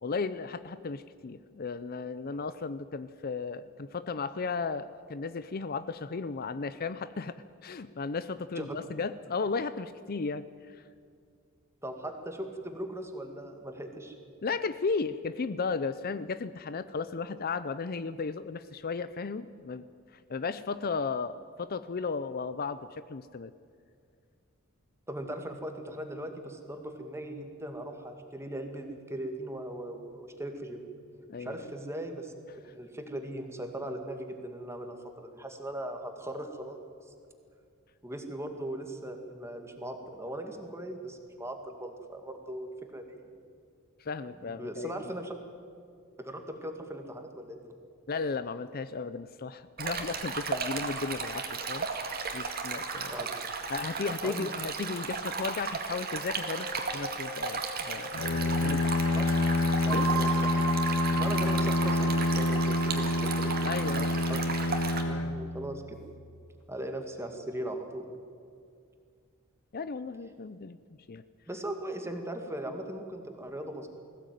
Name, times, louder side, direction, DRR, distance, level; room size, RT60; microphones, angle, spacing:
voice 1, 0.0-10.4 14.4-19.8 20.3-23.5 31.3-31.6 44.0-45.0 48.1-53.1 53.7-58.8 59.9-60.1 63.6-64.3 69.7-70.8 71.1-71.2, left 4 dB, 45° left, 13 dB, 0.6 m, -35 dB
voice 2, 11.8-14.2 25.1-30.8 31.4-32.3 32.6-36.8 38.0-43.3 44.3-45.3 46.2-47.8 53.1-53.4 54.2-54.5 58.4-58.7 59.2-59.4 59.8-60.5 61.1-63.6 64.3-64.4 65.1-66.0 66.7-68.1 71.5-73.9, right 1 dB, 15° right, 5 dB, 2.2 m, -39 dB
Stream, 49.8-65.0, right 4 dB, 45° right, 2.3 m, -35 dB
sound 1, 56.4-58.7 59.9-64.1, right 5 dB, 85° right, 3.1 m, -37 dB
Bowed string instrument, 58.1-66.1, left 2 dB, 70° left, 0.9 m, -28 dB
20.5 x 16.5 x 9.3 m, 2.3 s
head